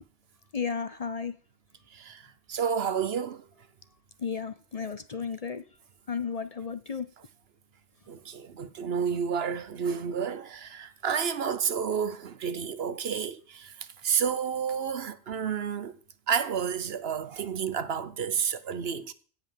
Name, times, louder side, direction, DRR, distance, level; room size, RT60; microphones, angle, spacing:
voice 1, 0.5-1.4 4.2-5.6 6.1-7.1, left 6 dB, 40° left, 0.6 m, -33 dB
voice 2, 1.9-3.4 8.1-16.0 16.3-19.1, right 7 dB, 70° right, 1.1 m, -30 dB
16.5 x 5.7 x 7.3 m
omnidirectional pair, 1.1 m